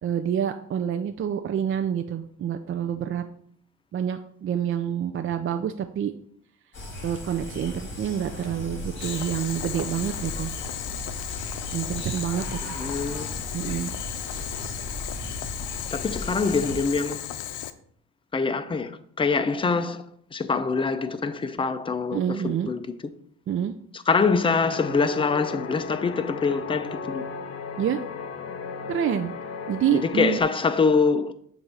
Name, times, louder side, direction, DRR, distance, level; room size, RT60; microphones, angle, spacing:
voice 1, 0.0-3.3 3.9-6.1 7.0-10.5 11.7-12.8 13.5-13.9 14.3-14.5 22.1-22.7 23.5-23.7 27.8-28.0 28.9-29.3 29.7-30.4, right 9 dB, 45° right, 0.4 m, -27 dB
sound 1, 6.7-16.8, left 1 dB, 40° left, 1.8 m, -36 dB
Boiling, 9.0-17.7, left 12 dB, 85° left, 0.5 m, -35 dB
voice 2, 12.7-13.4 15.9-17.2 18.3-20.0 20.3-22.8 23.9-27.2 29.9-31.3, left 4 dB, 15° left, 0.5 m, -24 dB
sound 2, 24.6-30.4, left 5 dB, 55° left, 0.9 m, -36 dB
7.7 x 2.6 x 5.6 m
cardioid pair, 90°, 30 cm